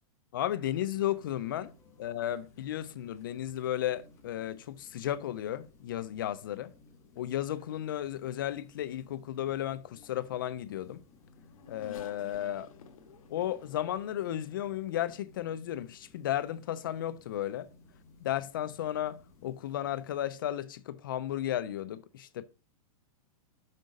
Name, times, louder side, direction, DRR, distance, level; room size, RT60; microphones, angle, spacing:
voice 1, 0.3-1.7 2.0-6.7 7.2-11.0 11.7-12.7 13.3-17.7 18.2-22.4, left 12 dB, 35° left, 0.4 m, -34 dB
sound 1, 0.7-20.1, left 3 dB, 15° left, 1.1 m, -59 dB
Race car auto racing / Accelerating revving vroom, 10.9-15.3 16.0-16.1 17.3-17.4, left 7 dB, 70° left, 1.5 m, -54 dB
6.5 x 4.7 x 6.4 m
supercardioid pair, 175°, 19 cm